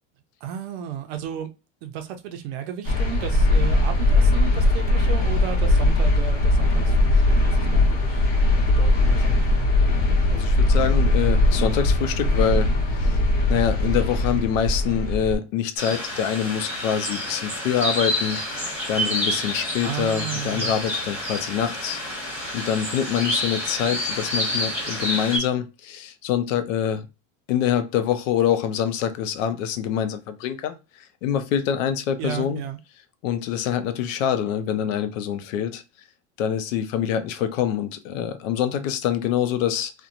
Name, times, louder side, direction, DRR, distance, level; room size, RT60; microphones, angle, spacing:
voice 1, 0.4-1.5 1.8-8.3 8.7-9.7 19.8-20.7 32.2-32.8, right 9 dB, 55° right, 0.5 m, -34 dB
sound 1, 2.8-15.4, left 2 dB, 55° left, 1.1 m, -20 dB
voice 2, 10.3-13.2 13.5-18.4 18.9-22.0 22.5-27.1 27.5-32.6 33.2-35.8 36.4-39.9, left 9 dB, 90° left, 0.6 m, -25 dB
sound 2, 15.8-25.4, left 1 dB, 5° right, 0.9 m, -28 dB
2.8 x 2.1 x 2.4 m
supercardioid pair, 165°, 38 cm